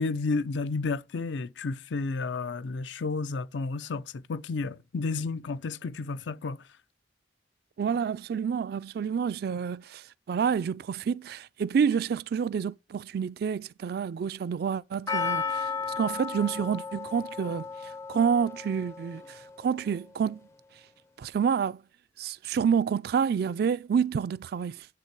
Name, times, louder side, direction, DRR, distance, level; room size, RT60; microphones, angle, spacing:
voice 1, 0.0-6.6, left 3 dB, 80° left, 0.5 m, -31 dB
voice 2, 7.8-20.4 21.2-21.8 22.2-24.9, right 7 dB, 55° right, 0.3 m, -28 dB
Percussion, 15.1-19.4 19.7-19.8, left 5 dB, 15° left, 0.4 m, -34 dB
9.8 x 3.7 x 4.6 m
head